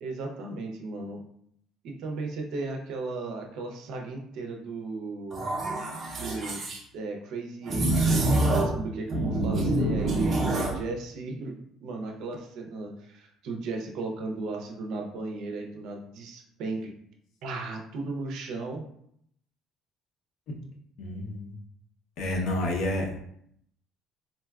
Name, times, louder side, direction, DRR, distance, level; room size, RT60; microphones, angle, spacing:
voice 1, 0.0-1.2 1.8-5.5 6.1-6.6 6.9-16.9 17.4-18.9, right 3 dB, 70° right, 2 dB, 0.5 m, -35 dB
sound 1, 5.3-6.8 7.7-8.8 9.1-10.8, right 2 dB, 30° right, 0.7 m, -26 dB
voice 2, 21.0-21.6 22.2-23.2, left 1 dB, 65° left, 1 dB, 0.6 m, -29 dB
3.8 x 2.2 x 2.3 m, 0.70 s
cardioid pair, 145°, 0 cm